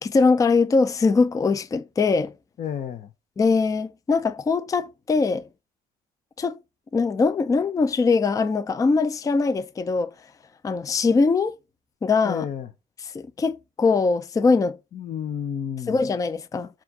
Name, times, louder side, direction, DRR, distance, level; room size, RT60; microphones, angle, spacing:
voice 1, 0.0-2.3 3.4-5.5 6.4-6.6 6.9-10.1 10.6-11.6 12.0-12.4 13.1-14.8 15.9-16.7, left 4 dB, 20° left, 0.4 m, -22 dB
voice 2, 2.6-3.1 12.2-12.7 14.9-16.0, left 8 dB, 50° left, 0.7 m, -31 dB
7.4 x 2.5 x 5.3 m
cardioid pair, 110°, 17 cm